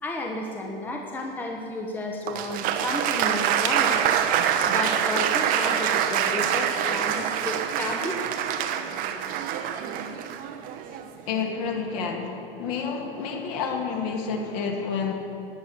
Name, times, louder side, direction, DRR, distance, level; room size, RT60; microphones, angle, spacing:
voice 1, 0.0-4.1 4.6-8.2, left 1 dB, 5° left, 1 dB, 0.9 m, -32 dB
Applause, 2.3-11.2, right 9 dB, 30° right, 0.8 m, -25 dB
voice 2, 11.3-15.1, left 5 dB, 45° left, 3 dB, 2.0 m, -29 dB
17.5 x 9.9 x 4.6 m, 2.7 s
figure-of-eight pair, 105°, 29 cm